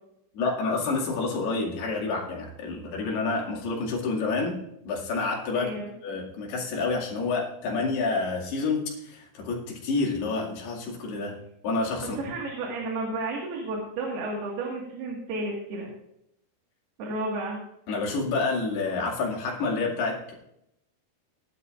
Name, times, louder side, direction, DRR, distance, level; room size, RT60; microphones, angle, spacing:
voice 1, 0.3-4.6 4.9-11.4 11.6-12.2 17.9-20.3, left 3 dB, 75° left, -2 dB, 4.2 m, -28 dB
voice 2, 5.5-5.9 12.2-15.9 17.0-17.6, right 2 dB, 75° right, -1 dB, 3.8 m, -32 dB
19.0 x 11.0 x 2.5 m, 0.79 s
omnidirectional pair, 4.7 m